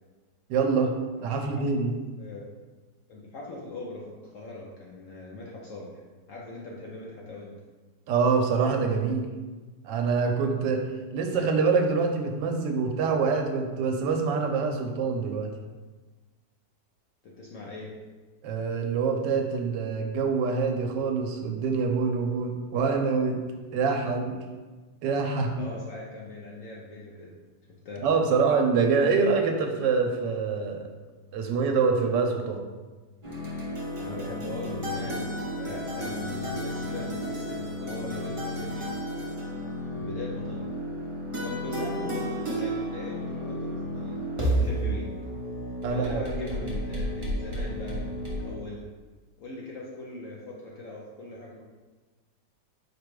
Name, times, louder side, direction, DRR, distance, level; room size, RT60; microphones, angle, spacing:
voice 1, 0.5-1.0 1.2-1.9 8.1-9.3 9.8-10.9 11.1-15.5 18.4-23.4 23.7-24.4 25.0-25.7 28.0-30.9 31.3-32.6 45.8-46.2, right 5 dB, 80° right, 4 dB, 1.2 m, -25 dB
voice 2, 1.2-1.6 2.2-2.4 3.1-6.0 6.3-7.6 17.2-17.9 25.5-27.3 27.8-28.1 34.0-35.3 35.5-39.0 39.9-40.7 41.4-45.1 45.9-48.9 49.4-51.6, left 2 dB, 65° left, -3 dB, 0.8 m, -40 dB
sound 1, 33.2-48.5, equal, 30° right, 0.6 m, -32 dB
4.9 x 2.2 x 4.6 m, 1.3 s
omnidirectional pair, 1.9 m